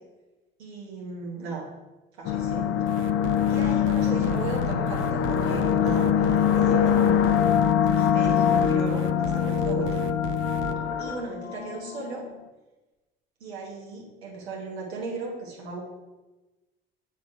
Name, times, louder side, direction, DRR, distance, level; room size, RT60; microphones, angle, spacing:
voice 1, 0.6-1.6 2.2-2.7 3.5-7.4 7.9-9.9 11.0-12.2 13.4-15.8, right 4 dB, 85° right, -3 dB, 1.2 m, -36 dB
sound 1, 2.2-12.0, left 9 dB, 45° left, 0.6 m, -23 dB
sound 2, 2.9-10.7, right 8 dB, 40° right, 0.5 m, -37 dB
7.3 x 3.0 x 4.7 m, 1.1 s
hypercardioid pair, 60°, 31 cm